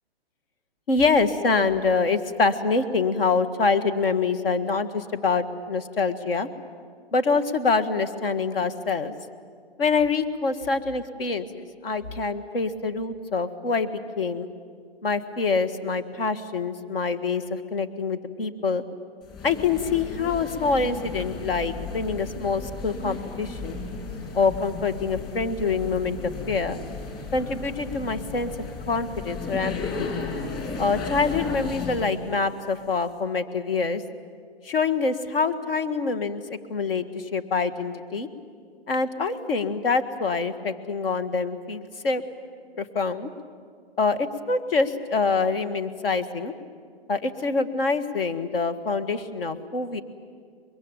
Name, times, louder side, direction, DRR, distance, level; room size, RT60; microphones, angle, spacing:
voice 1, 0.9-6.5 7.1-9.1 9.8-14.5 15.0-18.8 19.4-23.8 24.3-26.8 27.3-28.5 28.9-30.2 30.8-34.0 34.6-36.4 36.7-38.3 38.9-42.2 42.8-43.3 44.0-46.5 47.1-50.0, left 4 dB, 65° left, 10 dB, 1.7 m, -25 dB
sound 1, 19.2-32.2, left 4 dB, 15° left, 2.9 m, -34 dB
24.0 x 22.0 x 9.0 m, 2.1 s
hypercardioid pair, 165°, 31 cm